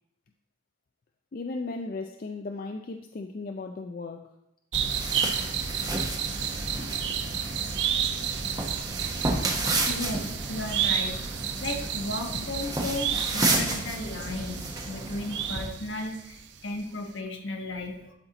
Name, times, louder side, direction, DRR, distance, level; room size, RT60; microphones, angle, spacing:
voice 1, 1.3-4.3 12.3-12.4, left 3 dB, 45° left, 4 dB, 0.4 m, -36 dB
sound 1, 4.7-15.7, right 2 dB, 20° right, 0.9 m, -32 dB
sound 2, 4.7-16.4 16.7-16.8, right 8 dB, 65° right, 0.6 m, -31 dB
voice 2, 9.1-18.1, left 2 dB, 75° left, 3 dB, 1.2 m, -35 dB
12.0 x 4.4 x 3.9 m, 0.83 s
head